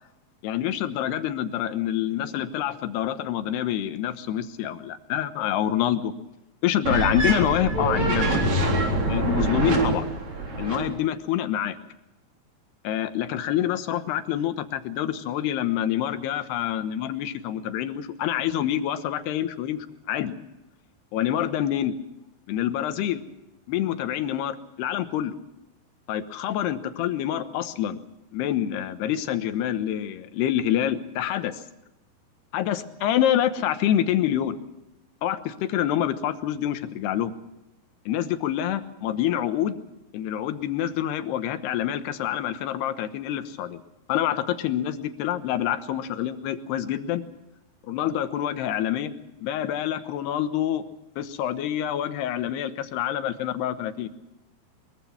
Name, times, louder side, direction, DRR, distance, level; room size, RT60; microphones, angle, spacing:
voice 1, 0.4-6.1 6.6-8.4 9.1-10.0 10.6-11.8 12.8-20.4 21.1-21.9 22.5-23.2 23.7-25.3 26.1-28.0 28.3-31.6 32.5-34.6 35.2-37.3 38.1-39.8 40.1-43.8 44.1-47.2 47.9-49.1 49.4-50.8 51.2-54.1, left 11 dB, 85° left, 10 dB, 3.2 m, -26 dB
sound 1, 6.9-10.9, right 2 dB, 45° right, 4.8 m, -24 dB
23.0 x 22.5 x 5.9 m, 0.93 s
omnidirectional pair, 4.7 m